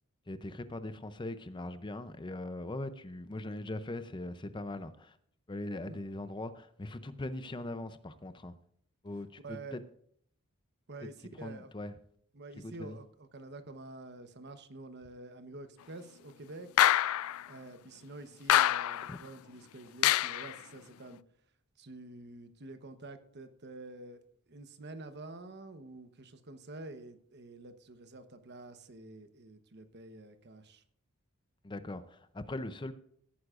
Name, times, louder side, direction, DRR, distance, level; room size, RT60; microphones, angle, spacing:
voice 1, 0.3-5.2 5.5-8.5 9.0-9.8 11.4-11.9 12.6-13.0 19.1-19.2 31.6-32.9, left 2 dB, 20° left, 11 dB, 0.5 m, -40 dB
voice 2, 9.4-9.8 10.9-11.7 12.3-16.9 17.5-21.2 21.8-24.2 24.5-30.8, right 2 dB, 50° right, 9 dB, 1.0 m, -48 dB
sound 1, 16.8-17.4 18.5-19.2 20.0-20.5, left 12 dB, 70° left, 0.3 m, -26 dB
17.5 x 9.5 x 2.5 m, 0.66 s
head